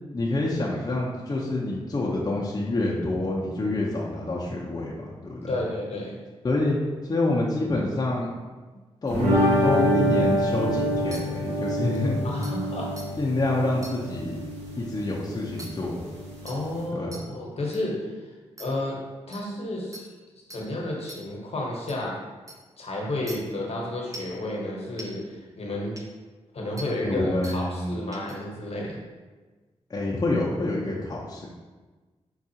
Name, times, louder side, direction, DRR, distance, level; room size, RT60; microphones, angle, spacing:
voice 1, 0.1-5.6 6.4-6.8 7.0-8.3 9.0-9.3 9.6-12.2 13.2-14.4 14.8-16.0 16.9-17.2 27.0-28.0 29.9-31.5, left 2 dB, 30° left, -5 dB, 0.6 m, -27 dB
voice 2, 5.5-6.2 12.2-12.9 16.4-18.0 18.6-19.0 19.3-20.1 20.5-22.1 22.8-25.9 26.5-29.0, left 1 dB, 60° left, -2 dB, 0.9 m, -31 dB
sound 1, 9.1-16.8, equal, 80° right, 1.1 m, -26 dB
sound 2, 11.1-11.2 11.9-12.0 12.4-12.5 13.0-13.1 13.8-13.9 15.6-15.7 16.5-16.6 17.1-17.2 17.7-17.8 18.6-18.7 19.3-19.4 19.9-20.0 20.5-20.6 21.1-21.2 21.9-22.0 22.5-22.6 23.3-23.4 24.1-24.3 25.0-25.1 26.0-26.1 26.8-26.9 27.4-27.6 28.1-28.3, right 1 dB, 30° right, 0.6 m, -40 dB
4.5 x 2.3 x 2.7 m, 1.3 s
cardioid pair, 50°, 12 cm